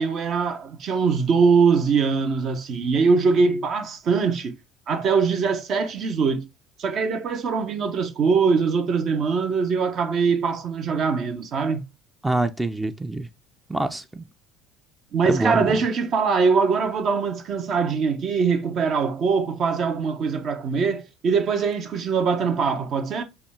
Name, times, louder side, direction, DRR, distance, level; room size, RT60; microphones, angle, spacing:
voice 1, 0.0-4.6 4.9-6.5 6.8-11.8 15.1-23.2, right 5 dB, 50° right, 0.7 m, -22 dB
voice 2, 12.2-13.3 13.7-14.2 15.2-15.8, right 2 dB, 10° right, 0.4 m, -25 dB
5.0 x 2.4 x 3.3 m
hypercardioid pair, 65°, 0 cm